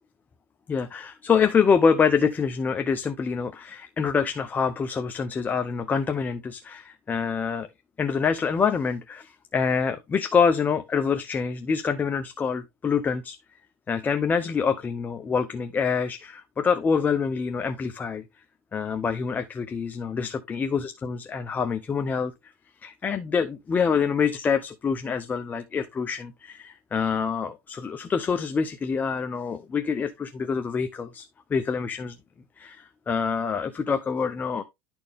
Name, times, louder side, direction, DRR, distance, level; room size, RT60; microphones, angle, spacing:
voice 1, 0.7-7.7 8.0-13.4 13.9-18.2 18.7-22.3 22.8-32.1 32.6-34.6, left 6 dB, 20° left, 0.7 m, -26 dB
11.5 x 4.4 x 3.4 m
supercardioid pair, 120°, 8 cm